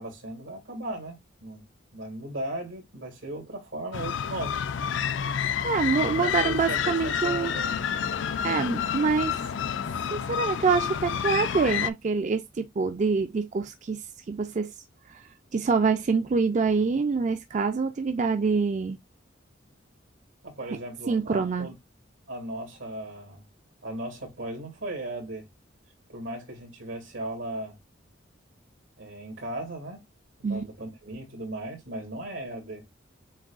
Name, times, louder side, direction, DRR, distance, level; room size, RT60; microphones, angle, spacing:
voice 1, 0.0-1.6 1.9-4.6 6.0-7.7 20.4-21.7 22.3-23.5 23.8-25.5 26.1-27.8 29.0-30.0 30.5-32.9, right 1 dB, 90° right, 2.7 m, -37 dB
sound 1, 3.9-11.9, left 8 dB, 75° left, 0.4 m, -29 dB
voice 2, 5.6-7.5 8.4-9.4 10.1-14.0 14.3-14.7 15.1-19.0 21.1-21.7 30.4-30.6, right 4 dB, 40° right, 0.4 m, -26 dB
7.3 x 2.7 x 2.4 m
head